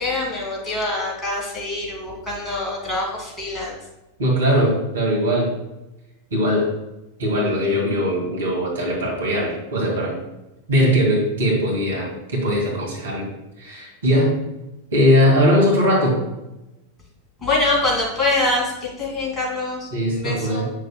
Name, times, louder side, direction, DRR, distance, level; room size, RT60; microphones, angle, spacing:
voice 1, 0.0-3.8 17.4-20.7, left 2 dB, 15° left, -3 dB, 2.5 m, -24 dB
voice 2, 4.2-5.5 6.3-6.7 7.2-10.2 10.7-13.3 13.6-14.4 14.9-16.2 19.9-20.6, equal, 65° right, -1 dB, 2.2 m, -20 dB
9.0 x 6.5 x 2.2 m, 0.97 s
figure-of-eight pair, 90°, 0 cm